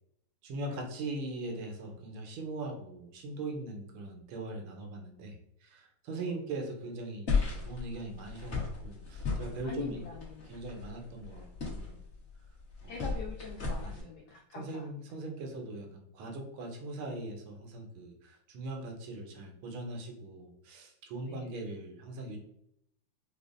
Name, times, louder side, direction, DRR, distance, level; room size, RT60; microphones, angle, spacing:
voice 1, 0.4-10.0 10.5-12.0 12.8-13.0 13.8-14.1 14.6-22.4, right 2 dB, 80° right, 2 dB, 1.6 m, -41 dB
sound 1, 7.3-14.0, left 4 dB, 45° left, 1.0 m, -36 dB
voice 2, 9.6-10.5 12.9-14.9 21.2-21.5, left 5 dB, 80° left, 0 dB, 0.9 m, -43 dB
5.0 x 2.1 x 2.5 m, 0.74 s
omnidirectional pair, 2.3 m